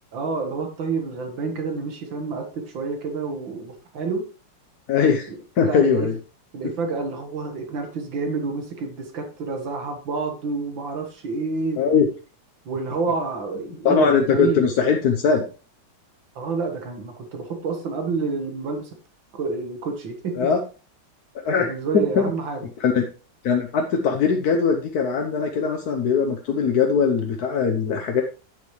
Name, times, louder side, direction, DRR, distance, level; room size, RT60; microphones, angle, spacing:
voice 1, 0.1-4.2 5.3-6.1 6.5-11.8 12.7-14.6 16.4-18.9 19.3-20.5 21.6-22.6, right 4 dB, 85° right, 4 dB, 2.4 m, -29 dB
voice 2, 4.9-5.3 5.6-6.2 11.8-12.1 13.8-15.4 20.4-20.6 21.3-22.3 22.8-23.0 23.4-28.2, left 6 dB, 60° left, 3 dB, 1.3 m, -20 dB
10.5 x 8.0 x 3.2 m, 0.34 s
omnidirectional pair, 2.0 m